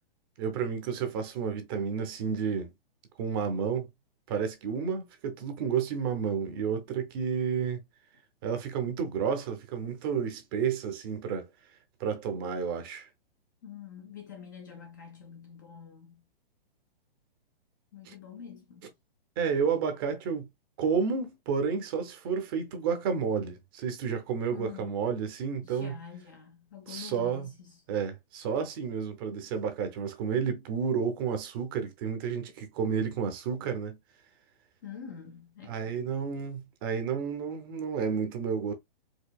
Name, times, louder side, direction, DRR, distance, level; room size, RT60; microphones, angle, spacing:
voice 1, 0.4-2.7 3.2-3.9 4.3-7.8 8.4-11.5 12.0-13.1 18.1-18.2 19.4-20.5 20.8-26.0 26.9-27.5 27.9-34.0 35.7-38.7, right 6 dB, 25° right, 0.6 m, -31 dB
voice 2, 13.6-16.2 17.9-18.9 24.5-24.9 25.6-27.8 34.8-36.1, left 8 dB, 20° left, 0.4 m, -46 dB
4.6 x 2.7 x 2.2 m
hypercardioid pair, 160°, 29 cm